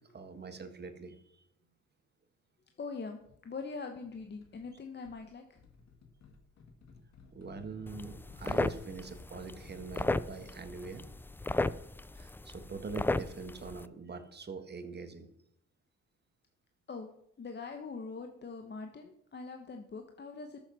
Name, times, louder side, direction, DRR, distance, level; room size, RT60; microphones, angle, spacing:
voice 1, 0.1-1.4 7.3-11.0 12.1-15.3, right 4 dB, 35° right, 8 dB, 1.6 m, -43 dB
voice 2, 2.8-5.6 8.5-8.6 16.9-17.1 17.4-20.6, left 4 dB, 35° left, 5 dB, 1.1 m, -43 dB
sound 1, 4.0-4.7 5.0-11.1, left 4 dB, 65° left, 2.2 m, -57 dB
sound 2, 7.9-13.9, left 2 dB, 5° left, 0.4 m, -35 dB
13.0 x 7.2 x 5.6 m, 0.73 s
cardioid pair, 90°, 30 cm